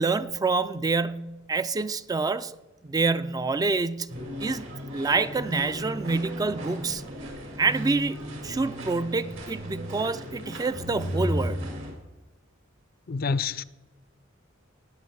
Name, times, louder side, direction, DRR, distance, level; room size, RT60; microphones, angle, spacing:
voice 1, 0.0-2.6 2.8-4.1 4.4-4.7 4.9-7.0 7.6-8.2 8.4-11.6, right 3 dB, 20° right, 0.3 m, -27 dB
sound 1, 4.1-11.9, equal, 75° right, 4.9 m, -35 dB
voice 2, 13.1-13.6, left 5 dB, 50° left, 0.5 m, -27 dB
18.0 x 8.5 x 4.6 m
head